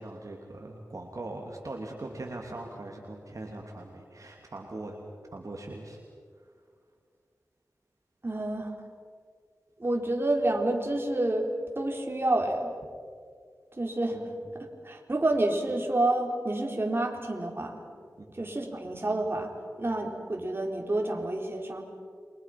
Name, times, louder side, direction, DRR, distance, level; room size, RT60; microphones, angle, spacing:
voice 1, 0.0-5.0 5.3-6.0 6.3-6.5 14.1-14.3 14.6-14.7 18.2-18.3, right 2 dB, 55° right, 0 dB, 2.8 m, -41 dB
voice 2, 8.2-8.7 9.8-11.5 11.8-12.7 13.7-17.8 18.3-19.5 19.8-21.8, right 1 dB, 35° right, 1 dB, 4.2 m, -29 dB
29.0 x 24.5 x 6.0 m, 2.1 s
wide cardioid pair, 60°, 6 cm